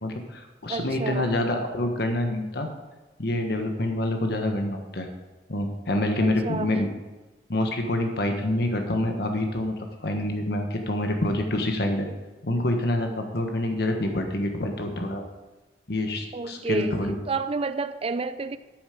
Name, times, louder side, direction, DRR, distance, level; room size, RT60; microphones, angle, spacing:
voice 1, 0.0-2.7 3.2-5.1 5.5-6.9 7.5-9.7 10.0-12.1 12.4-15.2 15.9-17.2, left 1 dB, 65° left, 1.3 m, -26 dB
voice 2, 0.7-1.3 6.2-6.7 16.3-17.0 17.3-18.6, right 3 dB, 35° right, 0.5 m, -30 dB
13.0 x 7.2 x 5.1 m
head